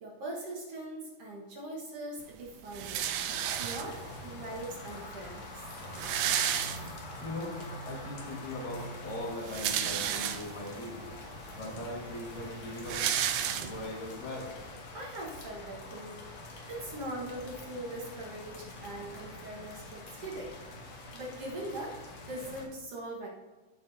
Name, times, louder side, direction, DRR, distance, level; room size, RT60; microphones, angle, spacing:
voice 1, 0.0-3.1 3.6-5.6 14.9-16.2 16.7-23.3, right 1 dB, 55° right, -4 dB, 2.1 m, -41 dB
sound 1, 2.7-4.2 5.0-5.1 5.3-5.4 5.7-7.3 7.7-7.8 9.2-10.7 11.4-11.5 11.7-14.1, right 10 dB, 80° right, 1.9 m, -32 dB
sound 2, 3.2-22.7, left 1 dB, 65° left, 2.3 m, -45 dB
voice 2, 7.2-7.6 7.9-11.0 11.6-13.0 13.5-14.5, left 2 dB, 90° left, -2 dB, 3.4 m, -40 dB
14.0 x 5.5 x 2.7 m, 1.2 s
omnidirectional pair, 3.8 m